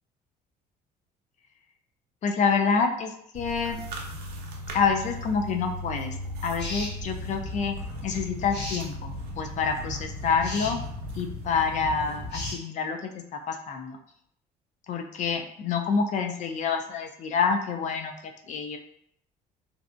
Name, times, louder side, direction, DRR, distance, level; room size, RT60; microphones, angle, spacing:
voice 1, 2.2-3.8 4.7-6.2 6.4-7.8 8.0-9.1 9.4-10.8 11.2-14.0 14.9-18.1 18.5-18.8, left 5 dB, 45° left, 4 dB, 0.4 m, -27 dB
sound 1, 3.3-12.5, left 1 dB, 70° right, 0.5 m, -36 dB
sound 2, 6.6-7.0 8.5-8.9 10.4-10.7 12.3-12.6, left 2 dB, 80° left, 1.0 m, -35 dB
2.6 x 2.1 x 2.5 m, 0.70 s
cardioid pair, 110°, 17 cm